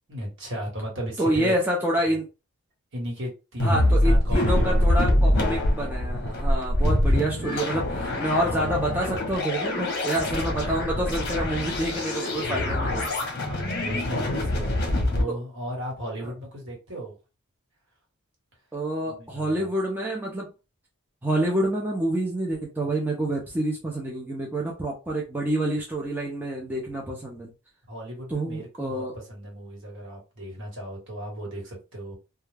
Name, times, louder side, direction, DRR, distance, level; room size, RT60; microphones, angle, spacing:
voice 1, 0.1-1.5 2.9-5.2 13.2-17.1 19.0-19.7 27.9-32.2, right 1 dB, 55° right, 1.3 m, -36 dB
voice 2, 1.2-2.3 3.6-13.1 15.3-15.4 16.2-16.3 18.7-20.5 21.2-27.5 28.3-29.2, right 1 dB, 10° right, 0.4 m, -28 dB
sound 1, 3.6-15.2, left 1 dB, 50° left, 0.7 m, -24 dB
2.2 x 2.2 x 3.2 m
head